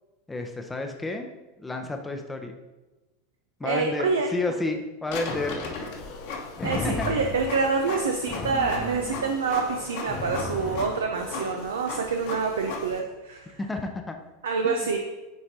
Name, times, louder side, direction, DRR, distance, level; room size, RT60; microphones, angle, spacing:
voice 1, 0.3-1.3 1.6-2.5 3.6-5.6 6.8-7.1 13.6-14.2 14.6-14.9, left 2 dB, 10° left, 3 dB, 0.6 m, -31 dB
voice 2, 3.6-4.3 6.6-13.6 14.4-15.0, right 4 dB, 75° right, 3 dB, 0.6 m, -27 dB
Printer, 5.1-13.0, left 4 dB, 60° left, 1.2 m, -37 dB
sound 1, 5.3-11.7, left 3 dB, 30° left, 0.9 m, -36 dB
10.0 x 4.3 x 2.8 m, 1.1 s
figure-of-eight pair, 85°, 0 cm